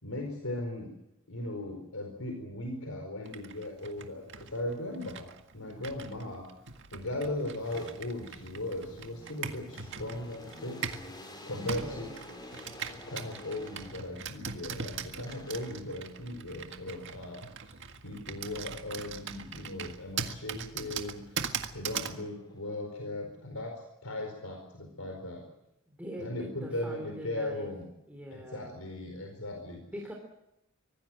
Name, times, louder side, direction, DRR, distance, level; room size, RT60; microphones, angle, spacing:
voice 1, 0.0-0.9 1.3-5.3 5.5-6.5 6.9-10.8 11.5-12.1 13.1-17.7 18.0-21.2 21.7-25.5 26.2-27.9 28.3-29.8, left 1 dB, 85° left, 3 dB, 4.6 m, -38 dB
Computer keyboard, 3.3-11.1 11.7-22.2, right 6 dB, 60° right, 1.8 m, -41 dB
sound 1, 6.7-14.4 15.3-16.1 19.2-20.1 20.5-22.9, left 1 dB, 20° left, 4.5 m, -51 dB
voice 2, 11.6-12.1 25.9-27.7 28.1-28.8 29.9-30.1, equal, 5° right, 1 dB, 3.3 m, -43 dB
25.0 x 18.5 x 7.7 m, 0.86 s
head